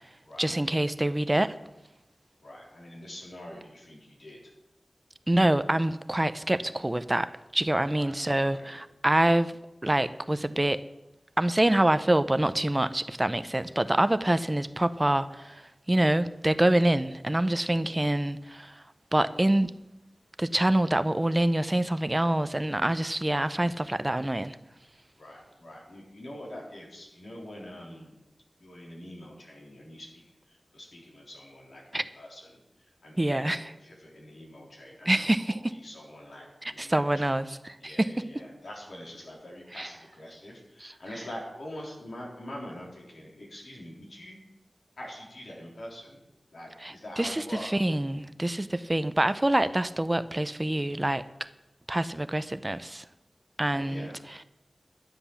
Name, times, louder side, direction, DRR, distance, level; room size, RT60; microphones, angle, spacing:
voice 1, 0.4-1.5 5.3-9.5 9.8-10.8 11.4-18.8 19.1-19.7 20.4-24.6 31.9-32.0 33.2-33.6 35.1-35.6 36.6-38.3 39.8-39.9 40.8-40.9 46.8-51.2 51.9-53.0 53.6-54.1, right 1 dB, 25° right, 0.6 m, -26 dB
voice 2, 2.4-4.5 7.9-8.1 8.5-8.8 25.2-28.2 28.6-37.4 37.8-44.4 45.0-46.2 46.5-47.7 53.7-54.2, left 1 dB, 85° left, 3.8 m, -44 dB
12.0 x 7.9 x 7.1 m
wide cardioid pair, 50°, 0 cm